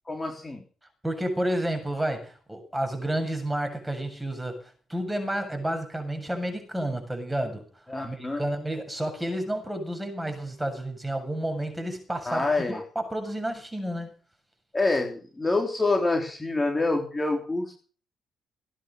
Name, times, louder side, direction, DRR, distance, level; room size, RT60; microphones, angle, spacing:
voice 1, 0.0-0.6 7.9-8.4 12.2-12.8 14.7-17.8, left 2 dB, 20° left, 2 dB, 3.6 m, -26 dB
voice 2, 1.0-4.6 4.9-7.6 8.0-12.4 13.0-14.1, right 1 dB, 10° right, 5 dB, 7.5 m, -30 dB
19.0 x 10.5 x 6.4 m, 0.39 s
cardioid pair, 90°, 0 cm